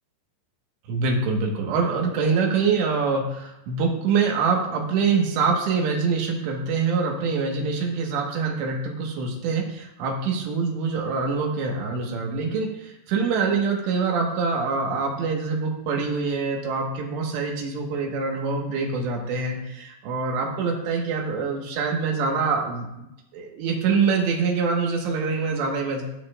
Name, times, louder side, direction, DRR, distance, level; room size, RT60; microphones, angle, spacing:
voice 1, 0.9-23.1 23.3-26.0, right 5 dB, 80° right, 0 dB, 3.5 m, -25 dB
14.5 x 7.1 x 2.4 m, 0.89 s
omnidirectional pair, 5.0 m